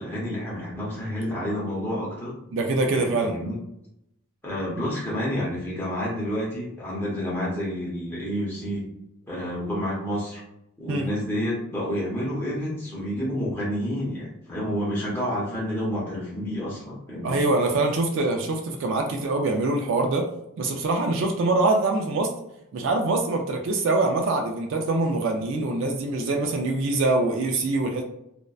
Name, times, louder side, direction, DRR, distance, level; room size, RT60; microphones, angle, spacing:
voice 1, 0.0-2.3 2.9-3.6 4.4-8.8 9.3-10.4 10.8-17.4, equal, 10° left, -6 dB, 0.6 m, -29 dB
voice 2, 2.5-3.4 10.9-11.1 17.2-20.3 20.6-22.3 22.7-28.0, right 2 dB, 55° right, 2 dB, 0.3 m, -24 dB
2.6 x 2.1 x 2.2 m, 0.81 s
head